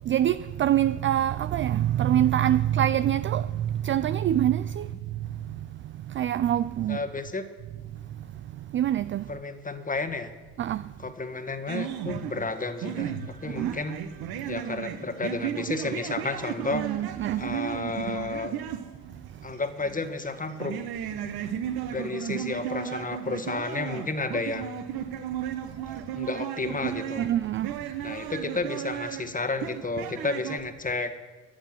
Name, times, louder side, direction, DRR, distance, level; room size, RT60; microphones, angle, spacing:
voice 1, 0.1-5.2 6.1-7.0 8.7-9.2 10.6-10.9 13.5-13.8 16.7-17.4 26.8-27.7, right 11 dB, 25° right, 0.4 m, -25 dB
voice 2, 6.9-7.5 9.3-10.3 11.0-14.0 14.5-16.8 17.3-18.5 19.4-20.8 21.9-24.7 26.1-27.3 28.0-31.1, left 3 dB, 15° left, 1.7 m, -32 dB
sound 1, 11.7-30.6, right 9 dB, 50° right, 1.5 m, -35 dB
14.5 x 10.0 x 6.1 m
figure-of-eight pair, 60°, 48 cm